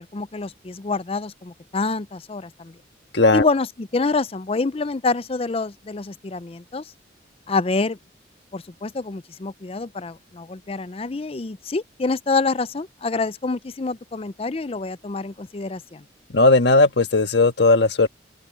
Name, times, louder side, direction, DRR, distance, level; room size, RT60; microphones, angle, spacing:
voice 1, 0.0-2.8 3.3-6.8 7.5-8.0 8.5-16.0, left 3 dB, 30° left, 0.5 m, -27 dB
voice 2, 3.1-3.5 16.3-18.1, left 3 dB, 60° left, 1.6 m, -16 dB
open air
head